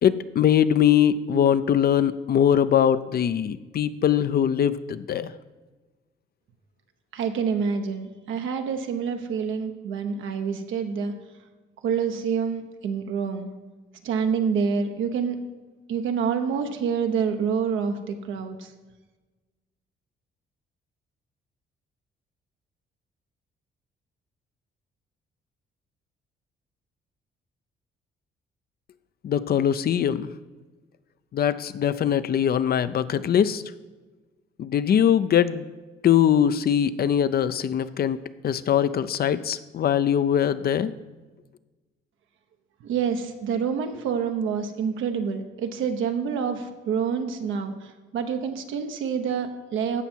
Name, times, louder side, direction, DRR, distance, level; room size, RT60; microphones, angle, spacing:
voice 1, 0.0-5.3 29.2-30.3 31.3-33.6 34.6-35.6 36.0-40.9, left 9 dB, 50° left, 14 dB, 0.5 m, -22 dB
voice 2, 7.1-11.1 11.8-13.5 14.0-15.4 15.9-18.7 42.8-50.0, right 6 dB, 80° right, 6 dB, 1.1 m, -27 dB
15.5 x 5.7 x 4.5 m, 1.3 s
cardioid pair, 90°, 20 cm